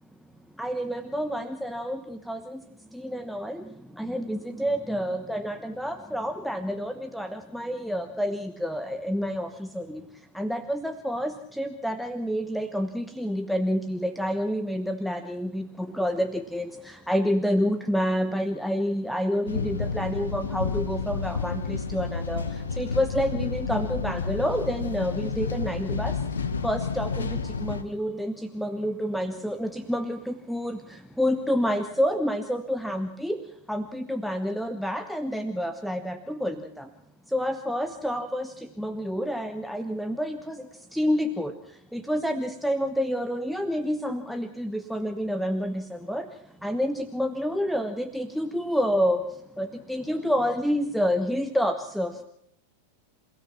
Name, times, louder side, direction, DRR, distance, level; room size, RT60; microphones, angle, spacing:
voice 1, 0.6-2.6 2.9-3.6 4.0-10.0 10.3-16.7 17.1-22.4 22.8-26.1 26.6-27.3 27.6-30.8 31.2-33.4 33.7-36.5 37.3-38.5 38.8-40.6 40.9-41.5 41.9-45.8 46.1-46.2 46.6-49.2 49.6-52.2, equal, ahead, 9 dB, 1.1 m, -28 dB
sound 1, 19.5-27.8, left 5 dB, 70° left, 1.4 m, -30 dB
28.0 x 16.5 x 5.9 m, 0.71 s
figure-of-eight pair, 90°, 0 cm